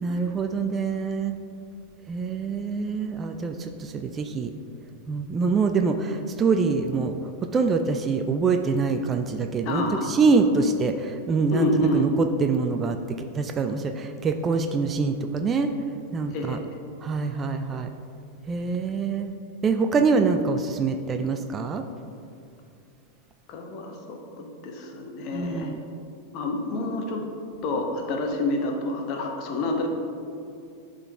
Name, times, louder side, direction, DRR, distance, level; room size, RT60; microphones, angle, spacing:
voice 1, 0.0-1.3 2.1-4.5 5.1-7.2 7.4-12.1 12.4-15.7 16.1-16.6 17.0-17.9 18.5-19.3 19.6-21.8 25.3-25.8, right 4 dB, 25° right, 7 dB, 0.3 m, -25 dB
voice 2, 9.6-10.2 11.5-12.1 16.3-16.6 23.5-25.7 26.3-27.2 27.6-29.9, left 2 dB, 40° left, 2 dB, 1.0 m, -28 dB
11.5 x 3.8 x 3.5 m, 2.5 s
figure-of-eight pair, 90°, 0 cm